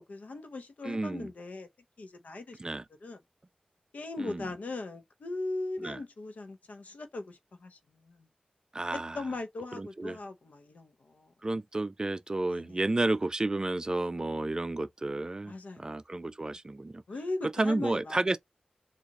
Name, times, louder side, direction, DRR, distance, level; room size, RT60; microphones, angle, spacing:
voice 1, 0.0-1.7 2.0-2.6 3.0-3.2 3.9-8.3 8.9-11.3 12.5-12.8 15.4-15.9 17.1-18.3, left 2 dB, 85° left, 0.8 m, -39 dB
voice 2, 0.8-1.3 2.6-2.8 4.2-4.5 5.8-6.0 8.7-9.2 9.8-10.2 11.4-17.0 17.6-18.4, right 2 dB, 30° right, 0.4 m, -31 dB
3.9 x 2.5 x 3.0 m
wide cardioid pair, 95°, 2 cm